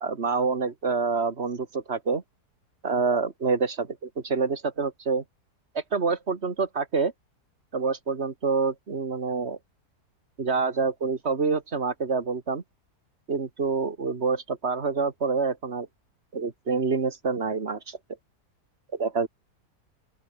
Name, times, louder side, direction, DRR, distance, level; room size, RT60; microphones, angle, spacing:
voice 1, 0.0-2.2 2.8-5.2 5.8-7.1 7.7-9.6 10.4-12.6 13.3-15.9 16.3-18.0 18.9-19.3, right 4 dB, 40° right, 2.1 m, -27 dB
open air
omnidirectional pair, 1.7 m